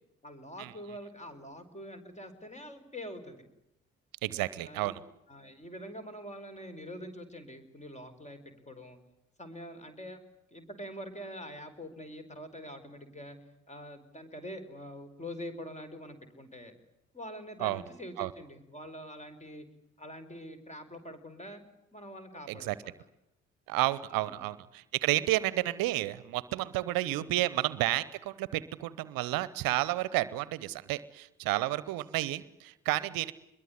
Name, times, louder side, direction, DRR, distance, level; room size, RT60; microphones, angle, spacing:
voice 1, 0.2-3.5 4.6-5.0 5.3-8.4 8.7-9.0 9.4-10.2 10.5-13.4 13.7-16.7 17.1-19.7 20.0-21.6 21.9-22.9 24.1-24.6 27.0-27.4, equal, 20° left, 8 dB, 5.1 m, -45 dB
voice 2, 4.2-5.0 17.6-17.8 18.2-18.3 22.5-22.7 23.7-33.3, right 17 dB, 65° right, 18 dB, 0.9 m, -31 dB
24.0 x 22.0 x 9.8 m, 0.86 s
hypercardioid pair, 45°, 37 cm